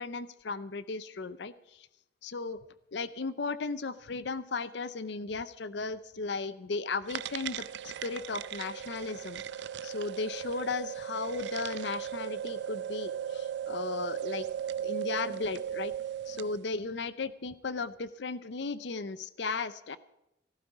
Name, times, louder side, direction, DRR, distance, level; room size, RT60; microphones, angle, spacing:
voice 1, 0.0-1.9 2.2-2.6 2.9-9.4 9.8-14.4 14.8-15.9 16.3-20.0, left 4 dB, 65° left, 15 dB, 0.6 m, -36 dB
sound 1, 7.1-16.6, right 9 dB, 65° right, 0.5 m, -37 dB
16.0 x 13.5 x 4.8 m, 0.90 s
head